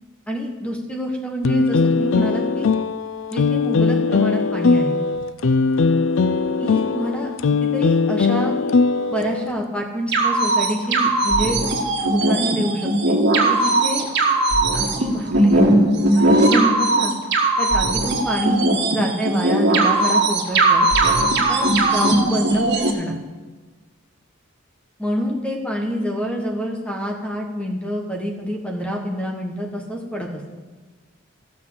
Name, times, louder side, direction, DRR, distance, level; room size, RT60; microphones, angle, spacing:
voice 1, 0.3-2.7 3.3-5.0 6.6-7.3 7.6-8.5 9.1-11.6 12.1-13.2 13.5-14.1 14.7-15.6 16.1-17.1 17.6-20.9 21.5-23.1 25.0-30.4, equal, 5° left, 1 dB, 1.3 m, -26 dB
sound 1, 1.4-9.5, left 4 dB, 65° left, 0.4 m, -20 dB
sound 2, 10.1-22.9, right 2 dB, 55° right, 1.9 m, -18 dB
14.0 x 6.1 x 7.8 m, 1.3 s
head